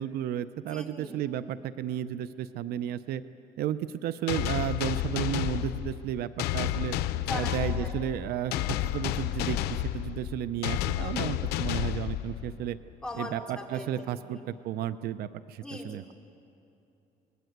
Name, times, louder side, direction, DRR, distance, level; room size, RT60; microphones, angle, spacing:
voice 1, 0.0-3.2 3.6-6.9 7.3-8.5 8.8-12.8 13.1-16.0, right 11 dB, 75° right, 14 dB, 0.7 m, -33 dB
voice 2, 0.7-1.2 7.3-8.0 11.0-11.5 13.0-14.4 15.6-16.1, left 1 dB, 5° left, -1 dB, 3.4 m, -40 dB
sound 1, 4.3-12.7, left 13 dB, 90° left, 0.7 m, -31 dB
26.0 x 20.5 x 8.0 m, 2.8 s
cardioid pair, 125°, 16 cm